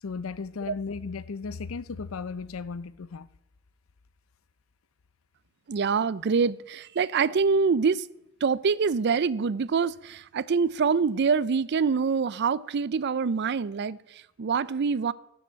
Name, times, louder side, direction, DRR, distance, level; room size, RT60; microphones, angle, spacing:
voice 1, 0.0-3.3, left 4 dB, 90° left, 0.6 m, -35 dB
voice 2, 5.7-8.1 8.4-15.1, right 5 dB, 55° right, 0.4 m, -25 dB
13.5 x 7.1 x 7.4 m
head